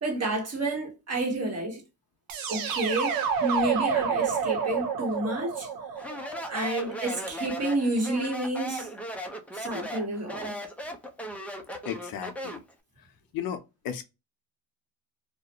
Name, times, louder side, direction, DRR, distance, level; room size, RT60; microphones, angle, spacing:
voice 1, 0.0-1.8 2.5-5.7 6.5-8.9 9.5-10.6, right 2 dB, 35° right, 1.2 m, -30 dB
sound 1, 2.3-7.2, right 6 dB, 55° right, 0.7 m, -29 dB
Speech, 6.0-12.7, equal, 5° left, 0.4 m, -37 dB
voice 2, 11.9-12.6 13.3-14.0, left 9 dB, 55° left, 0.6 m, -35 dB
2.4 x 2.1 x 2.8 m
cardioid pair, 100°, 42 cm